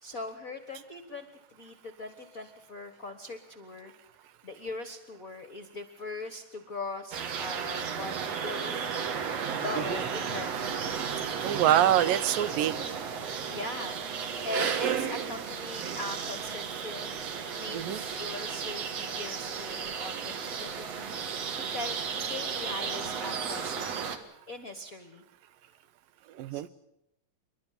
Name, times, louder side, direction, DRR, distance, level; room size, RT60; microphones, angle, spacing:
voice 1, 0.0-3.9 4.4-9.1 9.6-11.0 11.7-11.8 13.5-17.2 17.5-24.2 24.5-25.2 26.5-26.7, left 2 dB, 40° left, 9 dB, 1.2 m, -41 dB
sound 1, 7.1-24.2, right 7 dB, 55° right, 2.5 m, -34 dB
voice 2, 11.4-12.9 17.7-18.0 26.3-26.7, right 11 dB, 90° right, 14 dB, 2.7 m, -25 dB
28.0 x 12.0 x 9.5 m, 0.82 s
omnidirectional pair, 3.9 m